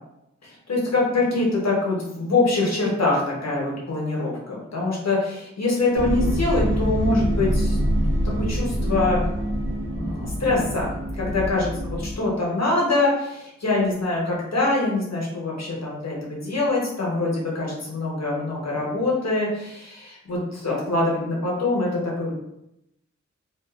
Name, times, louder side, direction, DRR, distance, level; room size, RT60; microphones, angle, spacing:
voice 1, 0.4-7.8 8.4-9.2 9.9-10.9 11.2-22.3, left 2 dB, 60° left, -4 dB, 0.9 m, -24 dB
sound 1, 5.9-12.2, equal, 45° right, 0.7 m, -25 dB
2.4 x 2.4 x 2.3 m, 0.84 s
wide cardioid pair, 80°, 29 cm